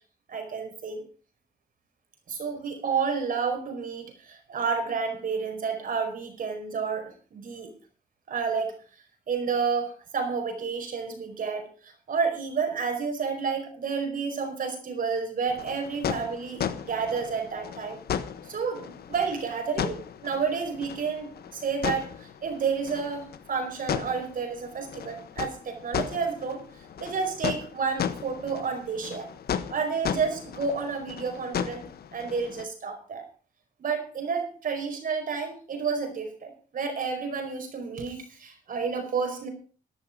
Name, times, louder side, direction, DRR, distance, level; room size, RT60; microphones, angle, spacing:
voice 1, 0.3-1.0 2.3-7.7 8.3-8.7 9.3-18.0 18.5-26.6 27.0-29.3 29.7-31.8 32.1-33.2 33.8-39.5, right 5 dB, 60° right, 5 dB, 4.9 m, -30 dB
sound 1, 15.5-32.7, left 8 dB, 75° left, 1.3 m, -35 dB
13.5 x 11.5 x 5.1 m, 0.39 s
wide cardioid pair, 135°, 16 cm